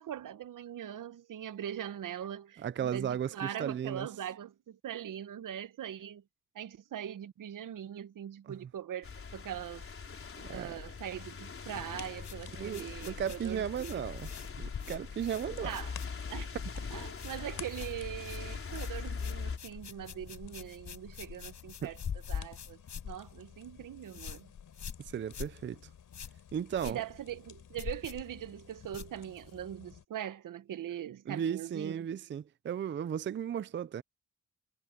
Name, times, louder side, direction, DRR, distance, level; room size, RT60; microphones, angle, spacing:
voice 1, 0.0-6.2 6.5-9.9 10.5-14.0 15.6-15.9 16.3-16.5 16.9-22.0 22.3-22.8 23.0-24.5 26.8-32.1, right 10 dB, 75° right, 0.9 m, -41 dB
voice 2, 2.6-4.1 8.5-8.6 10.4-10.8 12.5-14.3 14.6-15.7 21.8-21.9 25.0-25.8 26.5-27.0 31.3-34.0, right 9 dB, 35° right, 0.4 m, -35 dB
sound 1, 9.0-19.6, left 5 dB, 40° left, 4.3 m, -41 dB
sound 2, 11.6-30.1, left 9 dB, 80° left, 4.8 m, -54 dB
sound 3, 12.2-16.5 16.8-17.4 17.7-29.6, left 7 dB, 60° left, 5.4 m, -45 dB
wide cardioid pair, 145°, 32 cm